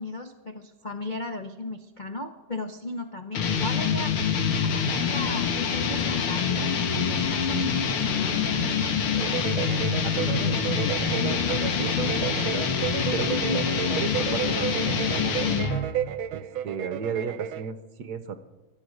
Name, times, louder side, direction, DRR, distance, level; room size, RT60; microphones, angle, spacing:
voice 1, 0.0-4.1 4.6-8.8 13.4-13.6 13.8-14.0, left 1 dB, 55° left, 6 dB, 0.5 m, -36 dB
sound 1, 3.3-15.9, left 6 dB, 90° left, 2.2 m, -26 dB
sound 2, 9.1-17.7, right 11 dB, 75° right, 1.4 m, -33 dB
voice 2, 10.0-12.7 13.1-13.6 14.0-15.5 16.3-18.4, right 6 dB, 60° right, 11 dB, 1.2 m, -34 dB
24.0 x 9.0 x 6.3 m, 1.1 s
omnidirectional pair, 2.3 m